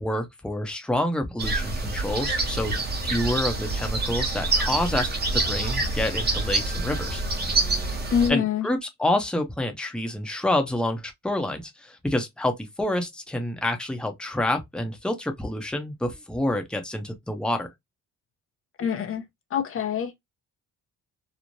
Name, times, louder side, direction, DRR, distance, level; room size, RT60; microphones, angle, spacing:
voice 1, 0.0-2.7 3.0-7.2 8.3-17.7, left 1 dB, 5° left, 0.7 m, -28 dB
sound 1, 1.4-8.3, right 2 dB, 35° right, 1.0 m, -26 dB
voice 2, 8.1-8.7 18.8-19.2 19.5-20.2, left 7 dB, 45° left, 0.5 m, -25 dB
3.1 x 2.1 x 2.4 m
cardioid pair, 90°, 30 cm